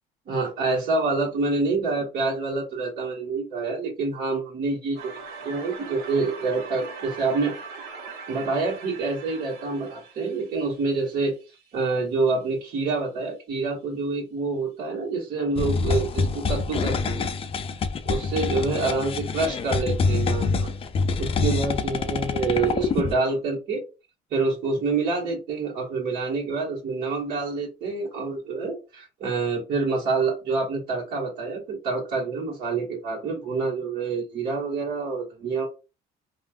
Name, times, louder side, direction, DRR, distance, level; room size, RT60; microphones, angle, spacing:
voice 1, 0.3-5.1 5.4-7.5 8.3-11.3 11.7-17.2 18.0-20.7 21.2-23.8 24.3-35.7, right 3 dB, 60° right, -7 dB, 1.4 m, -27 dB
sound 1, 4.9-11.8, right 4 dB, 80° right, 1.1 m, -41 dB
sound 2, 15.6-23.1, left 4 dB, 35° left, 0.4 m, -26 dB
3.1 x 2.4 x 2.3 m, 0.29 s
cardioid pair, 110°, 17 cm